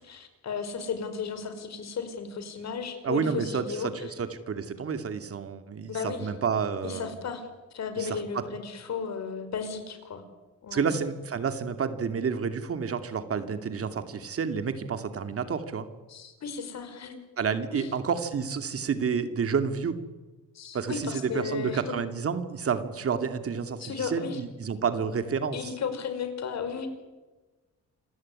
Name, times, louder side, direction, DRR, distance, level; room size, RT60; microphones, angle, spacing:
voice 1, 0.0-4.0 5.9-6.3 6.8-7.5 7.7-10.2 10.6-11.0 16.1-17.2 17.7-17.9 20.5-22.0 23.8-24.4 25.5-26.9, left 5 dB, 60° left, 9 dB, 5.2 m, -34 dB
voice 2, 3.0-7.1 8.0-8.2 10.7-15.9 17.4-20.0 20.7-25.7, right 6 dB, 50° right, 9 dB, 2.6 m, -30 dB
27.5 x 15.5 x 9.8 m, 1.2 s
cardioid pair, 90°, 30 cm